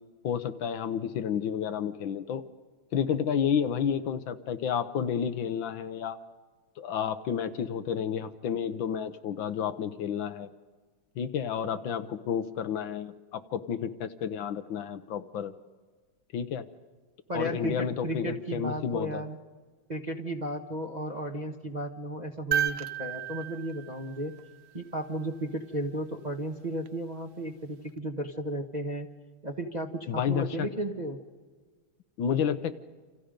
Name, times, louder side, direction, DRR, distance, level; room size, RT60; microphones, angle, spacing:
voice 1, 0.2-2.4 2.9-6.2 6.8-10.5 11.2-15.5 16.3-16.6 17.3-19.2 30.1-30.7 32.2-32.8, left 8 dB, 70° left, 10 dB, 1.5 m, -31 dB
voice 2, 17.3-19.4 19.9-24.3 24.7-29.1 29.4-31.2, right 1 dB, 25° right, 0 dB, 1.2 m, -34 dB
sound 1, 22.5-24.8 26.8-26.9, right 10 dB, 85° right, 0.5 m, -33 dB
29.0 x 27.0 x 5.2 m, 1.4 s
omnidirectional pair, 2.3 m